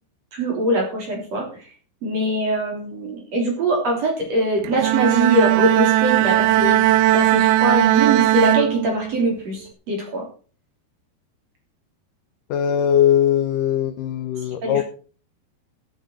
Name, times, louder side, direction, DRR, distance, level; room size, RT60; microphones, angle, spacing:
voice 1, 0.3-1.7 2.0-10.3 14.6-14.8, right 1 dB, 40° right, 0 dB, 4.2 m, -23 dB
Bowed string instrument, 4.6-9.3, right 15 dB, 80° right, 2.4 m, -18 dB
voice 2, 12.5-14.8, left 10 dB, 75° left, 9 dB, 2.1 m, -20 dB
13.5 x 9.1 x 4.5 m, 0.39 s
omnidirectional pair, 4.7 m